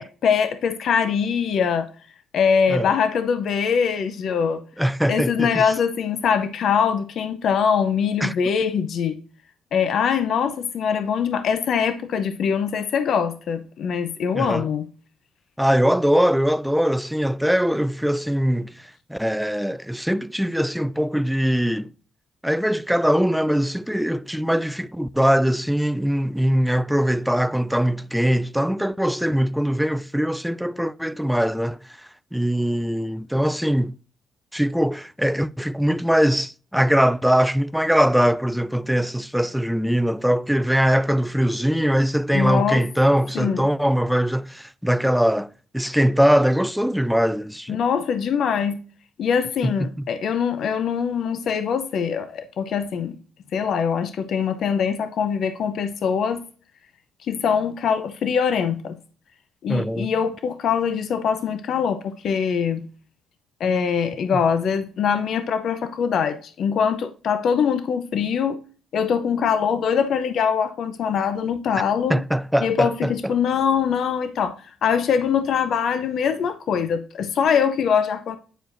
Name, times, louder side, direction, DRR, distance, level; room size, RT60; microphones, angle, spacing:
voice 1, 0.0-1.9 2.3-4.6 5.1-9.2 9.7-14.9 42.3-42.8 43.3-43.7 47.7-48.8 49.2-53.2 53.5-56.4 57.2-59.0 59.6-62.8 63.6-68.6 68.9-72.2 72.6-78.4, left 7 dB, 65° left, 0.7 m, -23 dB
voice 2, 4.8-5.6 8.2-8.4 14.3-14.7 15.6-21.9 22.4-31.8 32.3-34.0 34.5-47.8 49.6-49.9 59.7-60.1 72.1-73.3, equal, ahead, 0.3 m, -21 dB
9.0 x 4.8 x 2.6 m
cardioid pair, 90°, 0 cm